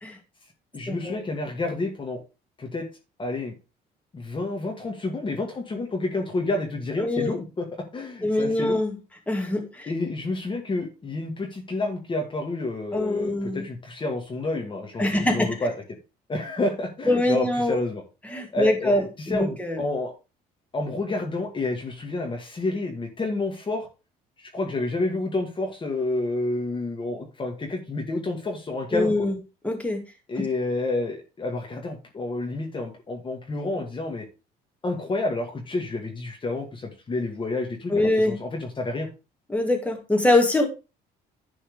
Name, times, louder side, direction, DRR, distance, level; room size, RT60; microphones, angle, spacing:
voice 1, 0.7-2.2 2.6-2.9 3.2-3.5 4.1-7.7 7.9-8.8 9.9-15.7 16.3-18.0 18.5-20.1 20.7-23.9 24.4-29.1 30.3-34.3 34.8-39.1, left 2 dB, 30° left, 2 dB, 2.0 m, -29 dB
voice 2, 7.0-7.4 8.2-8.9 9.3-9.9 12.9-13.7 15.0-15.6 17.1-17.8 18.3-19.8 28.9-29.3 29.6-30.0 37.9-38.3 39.5-40.7, left 1 dB, 10° left, 3 dB, 2.4 m, -23 dB
11.0 x 4.4 x 5.0 m, 0.30 s
cardioid pair, 110°, 17 cm